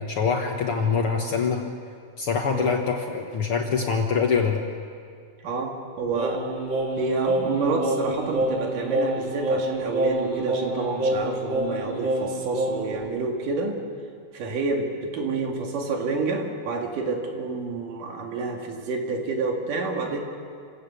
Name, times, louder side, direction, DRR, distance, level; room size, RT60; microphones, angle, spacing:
voice 1, 0.0-1.6 2.2-4.6, left 5 dB, 55° left, 2 dB, 1.7 m, -24 dB
voice 2, 5.4-6.5 7.0-13.8 14.3-20.2, right 3 dB, 75° right, 2 dB, 3.6 m, -28 dB
Singing, 6.1-13.0, right 1 dB, 35° right, 7.6 m, -27 dB
28.5 x 17.0 x 6.9 m, 2.2 s
omnidirectional pair, 3.8 m